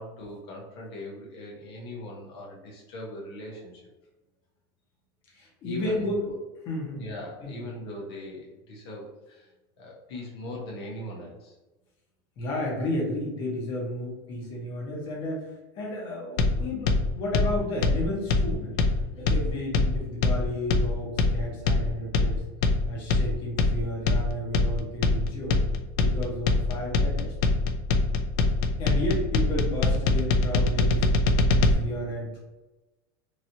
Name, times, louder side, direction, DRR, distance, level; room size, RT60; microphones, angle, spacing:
voice 1, 0.0-3.8 5.6-6.3 7.0-9.5 9.8-11.6 19.0-19.2, left 1 dB, 85° left, -2 dB, 0.9 m, -40 dB
voice 2, 5.3-6.3 6.6-7.1 7.4-7.6 12.4-18.8 19.2-22.4 22.9-25.6 26.0-27.3 28.8-32.4, left 1 dB, 40° left, -2 dB, 1.1 m, -33 dB
sound 1, 16.4-31.7, left 3 dB, 60° left, 0.4 m, -23 dB
3.0 x 2.6 x 2.8 m, 1.1 s
supercardioid pair, 145°, 13 cm